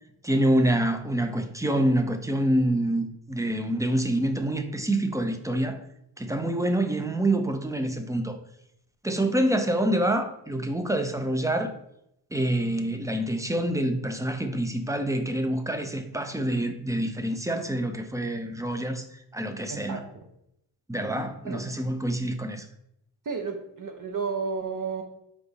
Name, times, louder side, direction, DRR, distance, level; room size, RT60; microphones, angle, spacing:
voice 1, 0.2-5.8 6.2-8.4 9.0-11.7 12.3-19.0 19.3-20.0 20.9-22.6, right 1 dB, 10° right, 7 dB, 0.4 m, -26 dB
voice 2, 19.7-20.3 21.4-21.6 23.2-25.0, right 5 dB, 45° right, 5 dB, 0.6 m, -32 dB
5.3 x 4.7 x 4.0 m, 0.78 s
wide cardioid pair, 160°, 45 cm